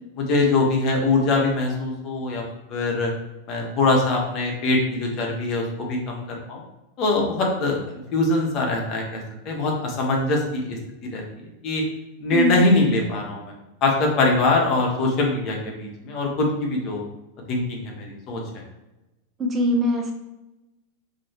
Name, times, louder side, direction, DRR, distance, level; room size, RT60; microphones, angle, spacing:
voice 1, 0.2-2.4 2.7-3.1 3.5-6.6 7.0-7.8 8.1-11.2 11.6-11.8 12.2-13.5 13.8-17.0 17.5-18.6, left 2 dB, 40° left, 0 dB, 1.2 m, -23 dB
voice 2, 19.4-20.1, left 1 dB, 25° right, 2 dB, 0.8 m, -21 dB
4.7 x 2.9 x 2.9 m, 1.0 s
hypercardioid pair, 95°, 0 cm